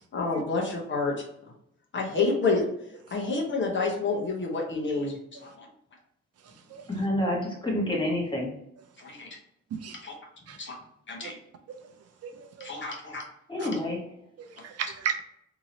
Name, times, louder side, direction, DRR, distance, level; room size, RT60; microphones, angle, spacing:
voice 1, 0.1-1.2 1.9-2.6 3.1-5.7 9.0-9.4 10.0-10.1 10.6-10.7 11.1-11.3 12.6-13.2 13.6-13.8, left 3 dB, 40° left, 0 dB, 0.9 m, -29 dB
voice 2, 6.9-8.5 13.1-13.2 13.5-14.0, left 1 dB, 15° left, -2 dB, 1.2 m, -28 dB
voice 3, 12.2-12.7 13.6-13.7 14.4-15.2, right 7 dB, 55° right, 6 dB, 0.5 m, -35 dB
2.9 x 2.7 x 2.7 m, 0.76 s
cardioid pair, 90°, 30 cm